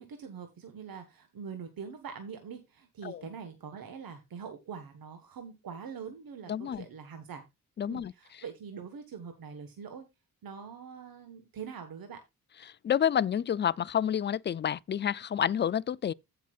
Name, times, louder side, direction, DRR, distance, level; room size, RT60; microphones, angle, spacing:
voice 1, 0.0-7.4 7.9-10.1 10.4-12.2, right 6 dB, 70° right, 1.4 m, -43 dB
voice 2, 6.5-6.9 7.8-8.1 12.8-16.1, left 9 dB, 30° left, 0.4 m, -29 dB
16.0 x 5.8 x 2.4 m
wide cardioid pair, 115°, 36 cm